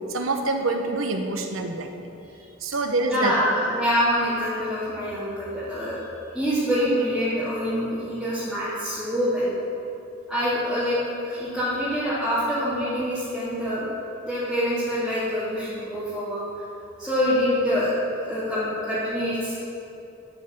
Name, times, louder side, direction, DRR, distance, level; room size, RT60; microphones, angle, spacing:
voice 1, 0.1-2.1 2.6-3.7 7.0-7.1, right 2 dB, 85° right, 4 dB, 1.1 m, -26 dB
voice 2, 3.0-6.0 6.3-9.5 10.3-11.0 11.2-13.8 14.2-16.4 17.0-19.6, equal, ahead, -14 dB, 2.5 m, -25 dB
11.5 x 5.5 x 7.3 m, 2.8 s
head